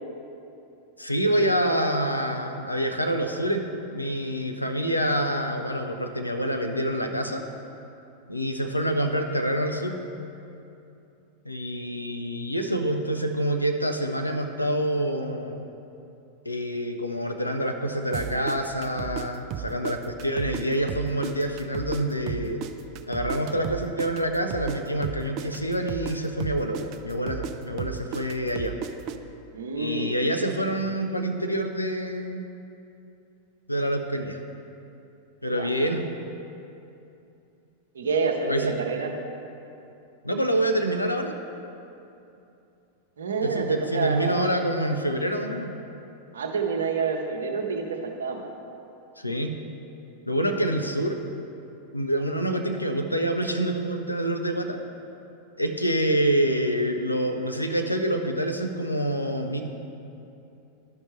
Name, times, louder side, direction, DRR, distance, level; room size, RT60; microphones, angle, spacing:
voice 1, 1.0-3.7 3.9-7.4 8.3-10.0 11.5-15.6 16.5-22.6 23.1-28.7 29.7-32.5 33.7-34.4 35.4-36.2 38.5-38.7 40.2-41.3 43.4-45.7 49.2-49.5 50.3-51.2 51.9-54.8 55.6-59.6, right 1 dB, 85° left, 5 dB, 0.6 m, -27 dB
sound 1, 18.1-20.6 20.9-24.8 25.0-29.2, right 9 dB, 40° right, 0.4 m, -34 dB
voice 2, 29.5-30.1 35.5-35.7 37.9-39.1 43.2-44.4 46.3-47.9 48.2-48.5, right 5 dB, 65° right, 3 dB, 0.8 m, -27 dB
12.0 x 5.4 x 3.1 m, 2.8 s
figure-of-eight pair, 90°, 0 cm